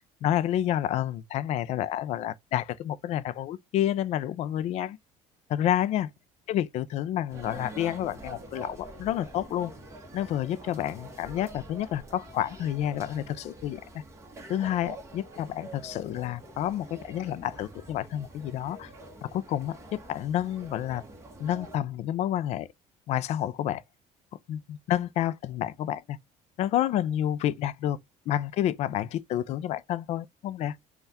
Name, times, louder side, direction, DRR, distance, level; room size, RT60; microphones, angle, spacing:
voice 1, 0.2-5.0 5.5-6.1 6.5-9.7 10.1-14.0 14.5-18.9 19.2-21.0 21.4-22.7 23.1-23.8 24.5-26.2 26.6-28.0 28.3-30.8, left 11 dB, 45° left, 0.4 m, -29 dB
sound 1, 7.3-21.8, right 1 dB, 20° right, 1.2 m, -46 dB
5.5 x 2.3 x 4.1 m
cardioid pair, 180°, 15 cm